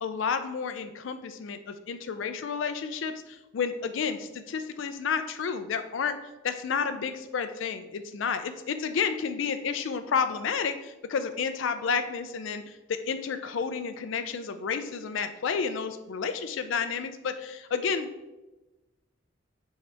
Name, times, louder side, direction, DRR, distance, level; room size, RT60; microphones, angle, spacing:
voice 1, 0.0-6.1 6.4-18.1, left 6 dB, 65° left, 9 dB, 0.4 m, -31 dB
6.2 x 4.5 x 3.3 m, 1.1 s
head